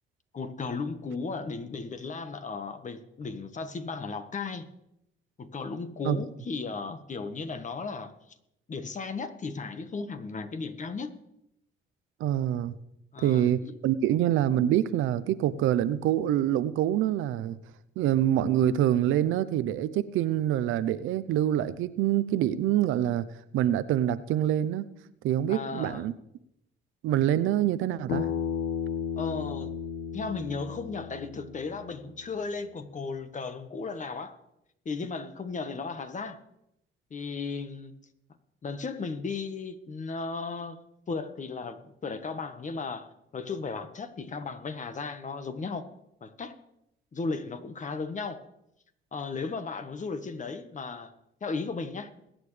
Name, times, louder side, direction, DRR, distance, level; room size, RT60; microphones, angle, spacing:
voice 1, 0.3-4.7 5.4-8.1 8.7-11.1 13.1-13.8 25.5-26.0 29.2-29.7 30.1-34.4 34.8-36.4 37.1-37.9 38.6-40.8 41.1-45.8 46.2-46.5 47.1-48.4 49.1-51.1 51.4-52.1, left 4 dB, 40° left, 1.4 m, -35 dB
voice 2, 12.2-12.8 13.2-17.6 18.0-23.2 23.5-24.9 25.2-26.1 27.0-28.3, right 11 dB, 90° right, 0.7 m, -25 dB
Bass guitar, 28.1-32.4, left 7 dB, 75° left, 1.6 m, -34 dB
22.0 x 9.1 x 3.3 m
cardioid pair, 90°, 20 cm